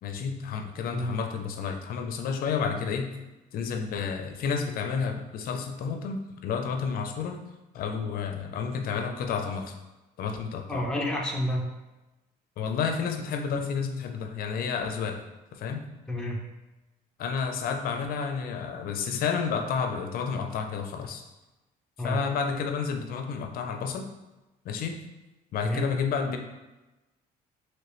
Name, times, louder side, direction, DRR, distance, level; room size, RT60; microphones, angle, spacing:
voice 1, 0.0-3.1 3.5-7.4 7.7-9.7 10.2-10.9 12.6-15.2 15.5-15.8 17.2-21.3 22.0-24.1 24.6-25.0 25.5-26.4, left 6 dB, 60° left, 5 dB, 0.5 m, -30 dB
voice 2, 10.7-11.7 16.1-16.4 22.0-22.2 25.6-25.9, equal, 5° left, -1 dB, 0.6 m, -29 dB
3.0 x 3.0 x 3.0 m, 1.1 s
cardioid pair, 110°, 17 cm